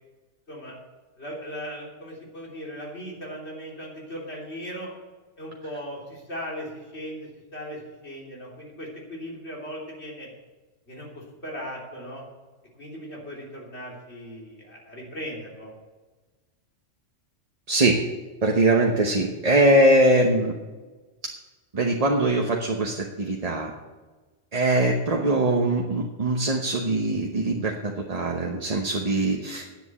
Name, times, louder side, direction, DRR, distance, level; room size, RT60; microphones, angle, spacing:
voice 1, 1.2-4.9 5.4-10.3 10.9-12.2 12.8-15.7, equal, 60° left, -3 dB, 3.6 m, -38 dB
voice 2, 17.7-18.1 18.4-20.5 21.2-21.3 21.7-23.7 24.5-29.6, right 1 dB, 35° right, 1 dB, 1.0 m, -22 dB
9.9 x 8.2 x 8.1 m, 1.3 s
omnidirectional pair, 1.2 m